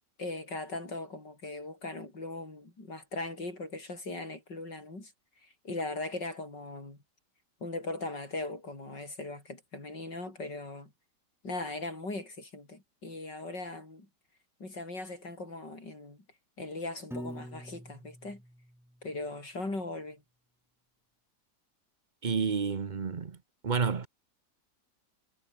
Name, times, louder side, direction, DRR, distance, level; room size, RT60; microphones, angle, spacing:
voice 1, 0.2-5.1 5.4-7.0 7.6-10.9 11.4-14.1 14.6-16.2 16.6-18.4 19.0-20.2, left 2 dB, 90° left, 7.7 m, -39 dB
Piano, 17.1-19.3, equal, ahead, 2.3 m, -45 dB
voice 2, 22.2-23.4 23.6-24.1, right 5 dB, 35° right, 0.9 m, -30 dB
omnidirectional pair, 1.8 m